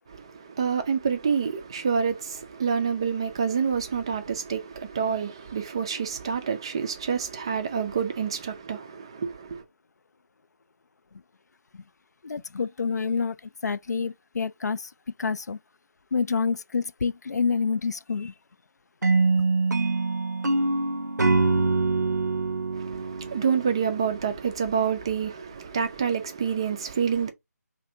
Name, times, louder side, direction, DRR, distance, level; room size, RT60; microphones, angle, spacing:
voice 1, 0.1-9.6 22.7-27.3, right 6 dB, 15° right, 0.3 m, -28 dB
voice 2, 12.2-13.4 13.6-14.9 15.2-15.6 16.1-18.3, left 5 dB, 70° left, 0.3 m, -27 dB
sound 1, 19.0-24.1, right 3 dB, 85° right, 0.6 m, -24 dB
2.7 x 2.5 x 4.2 m
figure-of-eight pair, 160°, 9 cm